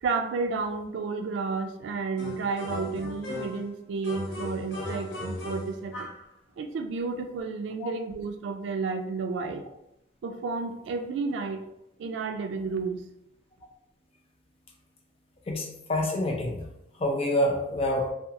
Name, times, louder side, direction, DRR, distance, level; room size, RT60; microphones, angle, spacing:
voice 1, 0.0-6.1 6.6-9.6 10.2-11.6 12.0-13.0, right 4 dB, 85° right, 7 dB, 0.3 m, -31 dB
sound 1, 2.2-3.7 4.0-6.3, left 1 dB, 90° left, 0.7 m, -37 dB
voice 2, 15.5-16.6 17.0-18.1, left 1 dB, 30° left, 0 dB, 0.5 m, -27 dB
2.8 x 2.3 x 2.4 m, 0.82 s
head